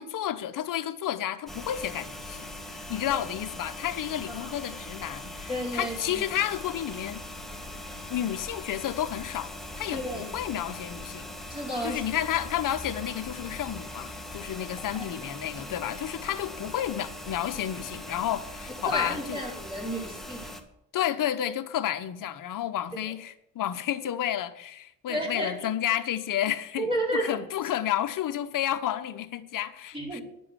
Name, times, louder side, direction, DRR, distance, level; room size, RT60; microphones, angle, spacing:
voice 1, 0.0-7.2 8.1-11.4 11.8-19.4 20.9-30.2, left 11 dB, 60° left, 9 dB, 1.1 m, -31 dB
sound 1, 1.5-20.6, left 1 dB, ahead, 1.7 m, -41 dB
voice 2, 5.5-6.3 9.9-10.3 11.5-12.0 14.9-15.0 18.8-20.5 25.1-25.5 26.8-27.4 29.9-30.2, right 1 dB, 15° right, -3 dB, 4.7 m, -31 dB
11.0 x 7.6 x 7.3 m, 0.78 s
cardioid pair, 85°, 36 cm